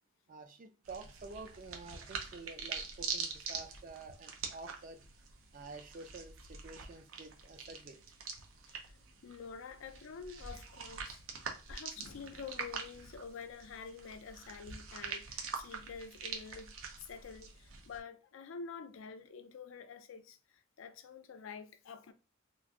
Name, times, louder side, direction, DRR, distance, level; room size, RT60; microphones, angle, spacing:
voice 1, 0.3-5.0 5.5-8.0, right 3 dB, 45° right, 0.5 m, -49 dB
sound 1, 0.8-18.0, right 5 dB, 80° right, 0.7 m, -45 dB
voice 2, 8.7-11.2 11.7-22.1, left 5 dB, 70° left, 0.4 m, -48 dB
3.0 x 2.5 x 3.6 m
head